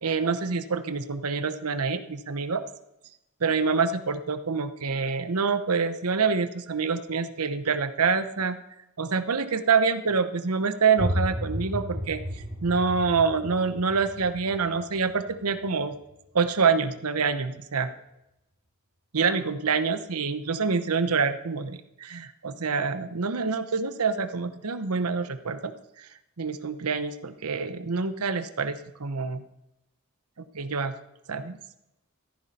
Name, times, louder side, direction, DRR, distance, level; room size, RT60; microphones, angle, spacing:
voice 1, 0.0-2.6 3.4-8.6 9.0-15.9 16.3-17.9 19.1-25.7 26.0-26.1 26.4-29.4 30.5-30.9 31.3-31.6, right 5 dB, 90° right, 11 dB, 0.9 m, -26 dB
sound 1, 11.0-16.6, equal, 35° right, 2.5 m, -34 dB
13.5 x 11.0 x 4.3 m, 0.87 s
head